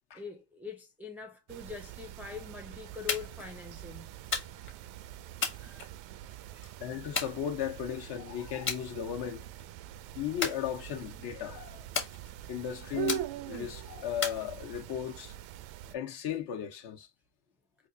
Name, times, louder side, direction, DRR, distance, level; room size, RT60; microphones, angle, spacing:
voice 1, 0.1-4.1 5.6-5.9 6.5-6.8, left 5 dB, 5° right, 0.5 m, -44 dB
sound 1, 1.5-15.9, right 13 dB, 85° right, 0.5 m, -43 dB
sound 2, 3.1-3.5 4.3-4.8 5.4-6.3 7.2-8.0 8.7-8.9 9.3-9.6 10.4-11.2 11.9-12.6 13.1-13.6 14.2-15.0, left 5 dB, 25° left, 1.0 m, -36 dB
voice 2, 6.8-9.5 10.1-11.9 12.5-15.3 15.9-17.1, left 9 dB, 60° left, 1.0 m, -36 dB
3.9 x 2.5 x 2.7 m
cardioid pair, 135°, 44 cm